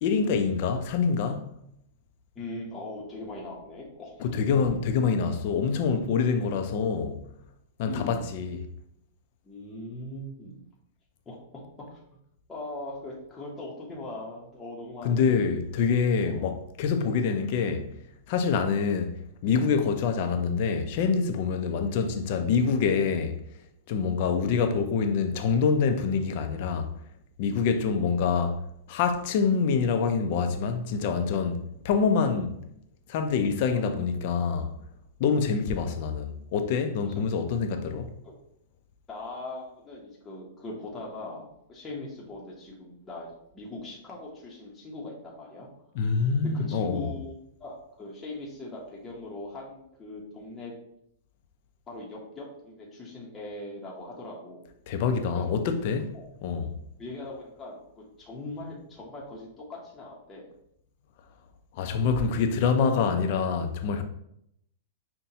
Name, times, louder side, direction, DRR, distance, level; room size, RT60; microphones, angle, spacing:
voice 1, 0.0-1.5 4.2-7.3 7.8-8.6 15.0-17.9 18.3-19.2 19.4-23.4 23.9-26.9 27.4-28.6 28.9-32.5 33.1-34.7 35.2-38.1 45.9-47.1 54.9-56.1 56.4-56.7 61.7-64.0, left 5 dB, 50° left, 0.5 m, -26 dB
voice 2, 2.3-4.2 4.6-4.8 7.8-8.3 9.4-10.6 11.3-11.6 11.9-12.0 12.5-15.4 16.2-16.5 35.5-35.8 37.0-37.1 38.2-38.3 39.1-43.3 43.5-45.7 46.4-50.7 51.9-54.6 55.3-55.6 56.1-56.3 57.0-60.5, left 2 dB, 15° left, 0.8 m, -40 dB
5.5 x 2.2 x 2.7 m
supercardioid pair, 150°, 0 cm